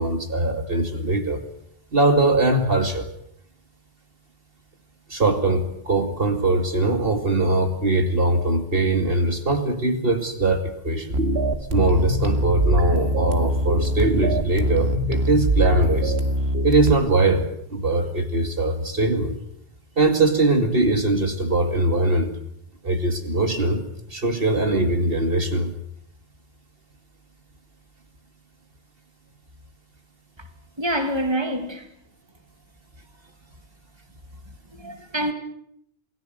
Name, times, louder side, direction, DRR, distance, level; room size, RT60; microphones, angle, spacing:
voice 1, 0.0-1.4 1.9-3.1 5.1-11.2 11.7-16.2 16.6-19.4 20.0-22.3 22.8-23.8 24.1-25.7, right 2 dB, 65° right, 2.6 m, -21 dB
sound 1, 11.1-16.9, right 1 dB, 85° right, 2.3 m, -22 dB
voice 2, 30.8-31.8 34.7-35.3, right 1 dB, 25° right, 2.6 m, -26 dB
28.0 x 19.5 x 8.0 m
omnidirectional pair, 1.1 m